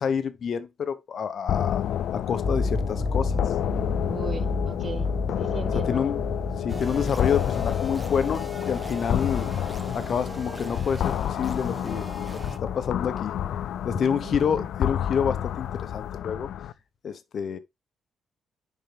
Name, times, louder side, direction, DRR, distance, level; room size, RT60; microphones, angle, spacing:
voice 1, 0.0-1.8 2.1-3.3 5.9-6.2 6.6-9.7 9.9-13.4 13.8-16.5 17.0-17.6, left 7 dB, 55° left, 1.1 m, -28 dB
sound 1, 1.5-16.7, left 10 dB, 75° left, 0.4 m, -29 dB
sound 2, 2.4-13.2, left 3 dB, 35° left, 1.7 m, -32 dB
voice 2, 4.0-5.1 5.4-6.1 14.0-14.7, right 5 dB, 40° right, 0.8 m, -38 dB
sound 3, 6.7-12.6, right 2 dB, 20° right, 1.1 m, -41 dB
7.3 x 5.7 x 3.5 m
cardioid pair, 90°, 0 cm